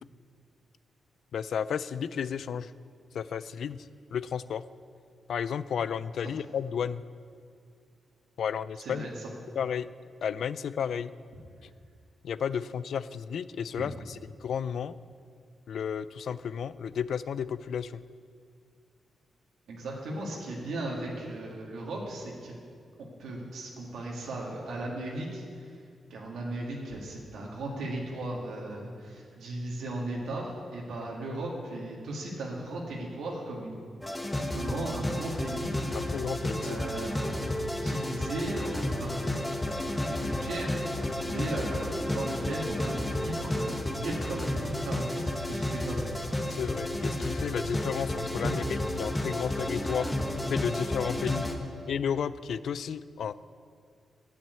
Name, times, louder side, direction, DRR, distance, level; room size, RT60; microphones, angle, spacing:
voice 1, 1.3-2.7 3.1-3.9 4.1-4.6 5.3-7.0 8.4-9.1 9.6-9.9 10.2-11.1 12.2-14.9 15.7-18.0 35.9-36.8 46.5-50.1 50.5-51.5 51.9-53.3, left 7 dB, 70° left, 16 dB, 0.4 m, -32 dB
voice 2, 8.8-9.3 19.7-22.6 23.0-25.8 26.1-33.8 34.5-35.7 36.6-37.4 37.8-39.3 40.1-40.8 41.2-46.1, right 1 dB, 90° right, -3 dB, 2.2 m, -36 dB
sound 1, 34.0-51.6, left 1 dB, 10° left, 1.1 m, -32 dB
9.2 x 8.5 x 8.2 m, 2.3 s
wide cardioid pair, 125°, 0 cm